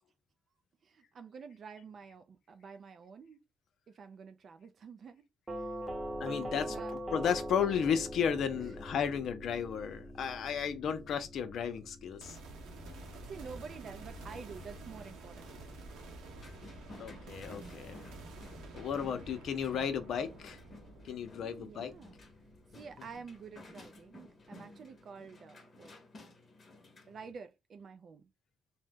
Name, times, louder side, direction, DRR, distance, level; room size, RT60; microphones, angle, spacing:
voice 1, 0.8-3.4 3.9-5.3 5.6-5.7 6.7-6.9 8.5-8.7 13.2-15.9 21.4-22.2 22.7-25.9 27.1-28.3, right 5 dB, 55° right, 0.3 m, -49 dB
Doorbell, 5.5-14.3, equal, 20° right, 0.8 m, -43 dB
voice 2, 6.2-12.4 17.0-18.0 18.7-20.6 21.0-21.9, left 7 dB, 70° left, 0.5 m, -34 dB
sound 1, 12.2-23.6, right 2 dB, 90° right, 0.8 m, -50 dB
sound 2, 16.3-27.3, left 2 dB, 40° left, 0.8 m, -54 dB
2.7 x 2.1 x 3.4 m
cardioid pair, 90°, 0 cm